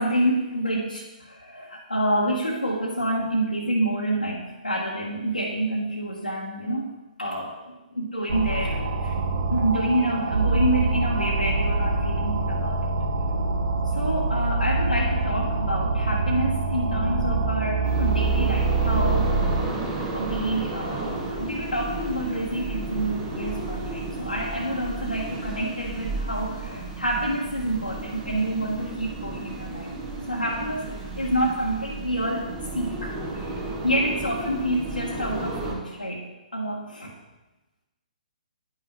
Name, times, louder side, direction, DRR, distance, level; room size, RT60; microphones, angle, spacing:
voice 1, 0.0-6.9 7.2-7.5 7.9-9.2 9.5-12.8 13.9-19.4 20.1-29.9 30.3-32.5 32.7-36.3 36.5-37.1, right 1 dB, 85° left, -4 dB, 1.3 m, -28 dB
sound 1, 8.3-19.6, right 3 dB, 55° right, 1.0 m, -25 dB
sound 2, 17.8-35.7, right 2 dB, 25° right, 1.7 m, -33 dB
10.5 x 5.6 x 3.6 m, 1.1 s
figure-of-eight pair, 130°, 5 cm